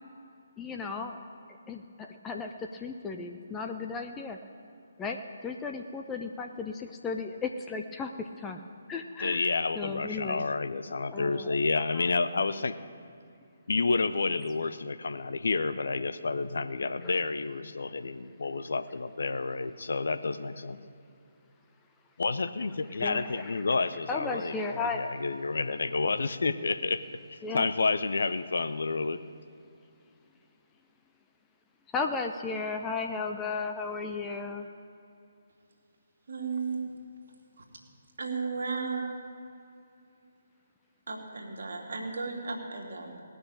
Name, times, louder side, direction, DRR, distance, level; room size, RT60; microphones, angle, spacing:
voice 1, 0.6-1.2 1.7-4.4 5.0-8.6 8.9-9.5 9.8-10.4 11.0-11.6 11.9-12.0 17.0-17.2 23.0-23.5 24.1-25.0 27.4-27.7 31.9-34.7, left 4 dB, 10° left, 4 dB, 0.5 m, -35 dB
voice 2, 9.2-12.8 13.7-20.8 22.2-27.0 27.3-29.2, left 3 dB, 55° left, 11 dB, 0.6 m, -30 dB
voice 3, 36.3-36.8 37.6-37.7 38.2-39.1 41.1-43.2, right 4 dB, 55° right, 0 dB, 2.2 m, -34 dB
18.5 x 6.3 x 8.8 m, 2.6 s
figure-of-eight pair, 140°, 0 cm